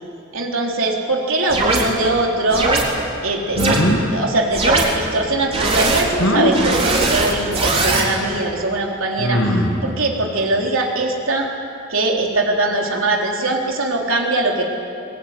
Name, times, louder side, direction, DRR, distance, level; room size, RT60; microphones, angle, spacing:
voice 1, 0.3-2.7 3.2-9.4 9.8-11.5 11.9-14.6, right 2 dB, 75° right, 0 dB, 3.9 m, -21 dB
sound 1, 1.5-1.8 2.5-2.8 3.6-3.8 4.5-4.8 5.5-6.0 6.5-8.1, right 3 dB, 30° right, 3.9 m, -19 dB
sound 2, 3.5-4.0 6.2-6.5 8.0-8.1 9.2-9.8, equal, 80° left, 6.6 m, -19 dB
23.0 x 21.0 x 9.7 m, 2.5 s
head